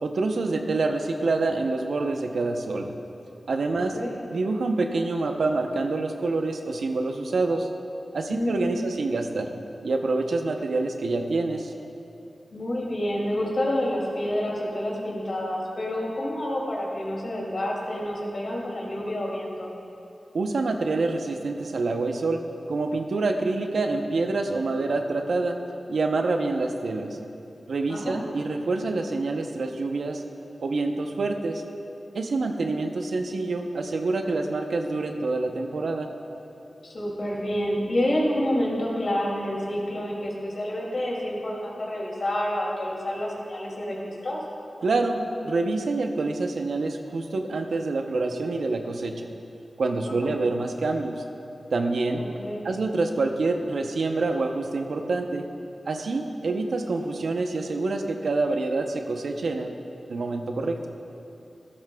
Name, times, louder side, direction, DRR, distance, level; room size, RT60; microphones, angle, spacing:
voice 1, 0.0-2.9 3.5-3.9 4.3-7.7 8.1-9.5 9.8-11.7 20.3-25.6 25.9-27.2 27.7-30.2 30.6-31.6 32.1-36.1 44.8-49.3 49.8-51.2 51.7-52.2 52.6-55.4 55.9-59.8 60.1-60.9, right 3 dB, 85° right, 4 dB, 0.7 m, -26 dB
voice 2, 3.7-4.1 8.3-8.8 12.5-19.7 27.9-28.2 36.8-44.4 50.1-50.2 52.2-52.7, left 1 dB, 65° left, -3 dB, 2.5 m, -28 dB
13.0 x 13.0 x 2.3 m, 2.7 s
wide cardioid pair, 70°, 0 cm